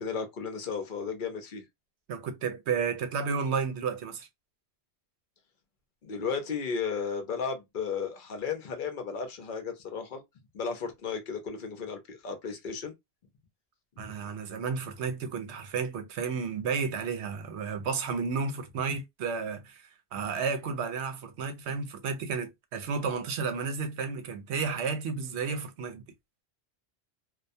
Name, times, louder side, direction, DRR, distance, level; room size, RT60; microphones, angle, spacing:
voice 1, 0.0-1.6 6.0-10.2 10.5-12.9 14.0-14.1, left 5 dB, 55° left, 0.7 m, -34 dB
voice 2, 2.1-4.3 14.0-26.0, right 5 dB, 75° right, 0.9 m, -32 dB
2.3 x 2.2 x 2.6 m
omnidirectional pair, 1.2 m